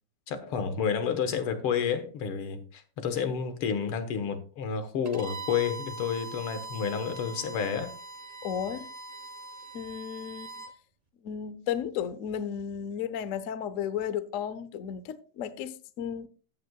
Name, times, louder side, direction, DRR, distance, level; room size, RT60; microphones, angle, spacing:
voice 1, 0.3-7.9, left 7 dB, 80° left, 2.3 m, -30 dB
Bowed string instrument, 5.0-10.7, right 2 dB, 55° right, 0.4 m, -42 dB
voice 2, 8.4-8.9 9.7-10.5 11.2-16.3, left 8 dB, 65° left, 0.8 m, -34 dB
14.5 x 9.3 x 2.3 m
omnidirectional pair, 2.4 m